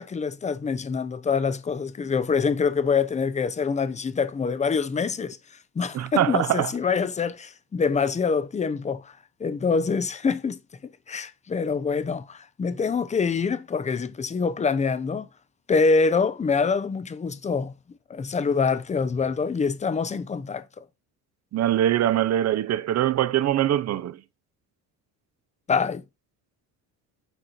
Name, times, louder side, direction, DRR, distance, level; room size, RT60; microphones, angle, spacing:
voice 1, 0.0-5.4 5.8-9.1 9.4-10.6 11.1-15.3 15.7-17.7 18.1-20.6 25.7-26.0, left 5 dB, 20° left, 0.7 m, -25 dB
voice 2, 5.9-6.7 21.5-24.2, right 12 dB, 45° right, 0.8 m, -23 dB
9.2 x 4.3 x 4.2 m
cardioid pair, 135°, 38 cm